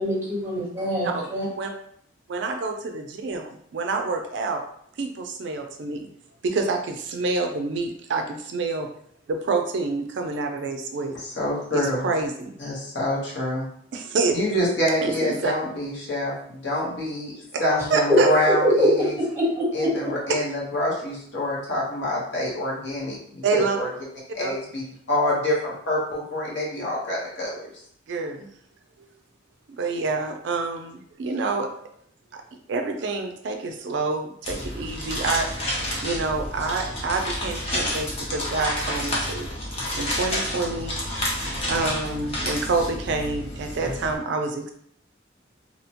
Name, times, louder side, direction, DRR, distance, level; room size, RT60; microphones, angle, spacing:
voice 1, 0.0-1.4 18.6-18.9 19.2-19.9, equal, 10° right, -6 dB, 0.9 m, -24 dB
voice 2, 1.0-1.7 2.3-4.6 5.0-6.1 6.4-8.9 9.3-11.2 11.7-12.5 13.9-14.4 15.0-15.5 17.5-17.6 17.9-18.3 23.4-23.8 24.4-24.5 28.1-28.5 29.8-31.7 32.3-32.4 32.7-35.5 36.0-39.5 40.0-41.0 41.7-44.7, right 3 dB, 65° right, 4 dB, 0.3 m, -27 dB
voice 3, 11.1-12.1 12.6-13.7 14.3-17.3 17.6-19.1 19.7-23.9 24.3-27.7, left 1 dB, 65° left, -5 dB, 0.9 m, -26 dB
sound 1, 34.4-44.1, left 1 dB, 30° left, 0.6 m, -30 dB
2.7 x 2.1 x 2.8 m, 0.67 s
head